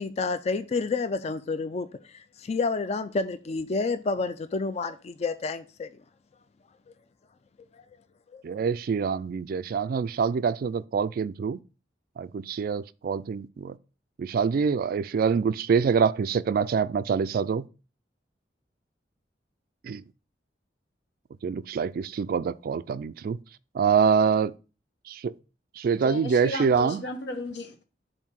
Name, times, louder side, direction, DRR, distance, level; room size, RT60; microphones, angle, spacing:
voice 1, 0.0-5.9 8.3-8.4, left 4 dB, 40° left, 0.4 m, -29 dB
voice 2, 8.4-11.6 12.2-13.8 14.2-17.6 19.8-20.0 21.4-23.4 23.7-24.5 25.1-25.3 25.8-27.0, right 6 dB, 55° right, 0.3 m, -25 dB
voice 3, 26.0-27.8, left 2 dB, 80° left, 1.2 m, -35 dB
7.2 x 2.7 x 5.8 m
head